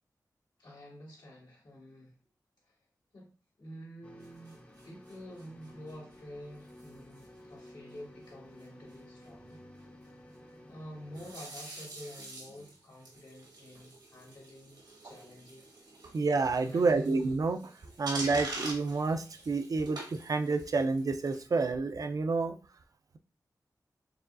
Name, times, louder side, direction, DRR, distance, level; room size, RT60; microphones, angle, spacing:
voice 1, 0.6-2.1 2.6-2.8 3.1-3.3 3.6-9.6 10.6-15.7 16.6-17.0 17.8-17.9, equal, 75° left, -4 dB, 1.9 m, -49 dB
sound 1, 4.0-11.3, left 1 dB, 20° left, 0.6 m, -53 dB
sound 2, 4.2-6.1 6.7-6.9 7.2-7.4 7.7-7.8 8.0-8.1 8.3-8.4 8.6-9.0 11.1-21.4, right 2 dB, 85° right, 1.3 m, -46 dB
voice 2, 16.1-17.7 18.0-22.6, right 3 dB, 60° right, 8 dB, 0.4 m, -29 dB
4.7 x 3.1 x 2.5 m, 0.35 s
wide cardioid pair, 65°, 7 cm